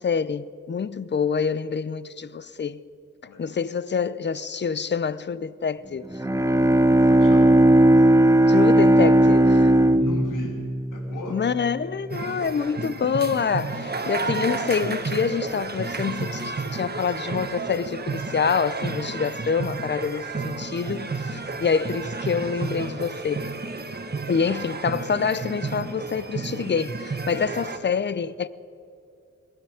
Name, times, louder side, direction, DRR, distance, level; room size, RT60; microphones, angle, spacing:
voice 1, 0.0-2.8 3.4-6.1 8.5-9.7 11.3-23.5 24.3-28.5, left 6 dB, 35° left, 0.6 m, -26 dB
Bowed string instrument, 6.1-11.7, right 1 dB, 10° right, 0.6 m, -17 dB
voice 2, 7.0-7.6 9.8-10.6 10.9-11.4 27.3-27.5, left 1 dB, 85° left, 2.9 m, -35 dB
sound 1, 12.1-27.8, right 3 dB, 30° right, 1.5 m, -31 dB
19.5 x 13.0 x 5.1 m
cardioid pair, 50°, 31 cm